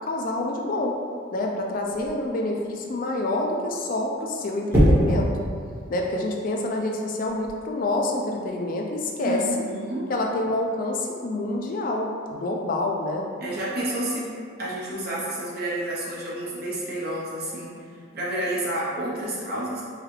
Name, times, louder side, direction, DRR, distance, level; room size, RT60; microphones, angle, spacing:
voice 1, 0.1-1.0 1.3-5.3 5.9-9.4 10.1-13.3, left 2 dB, 45° left, 1 dB, 0.4 m, -27 dB
sound 1, 1.9-2.2 4.7-5.3 7.2-7.5, equal, 10° right, 1.1 m, -20 dB
voice 2, 9.2-10.1 13.4-17.7 18.1-19.8, right 1 dB, 50° right, -6 dB, 0.9 m, -30 dB
4.8 x 2.3 x 3.1 m, 2.1 s
head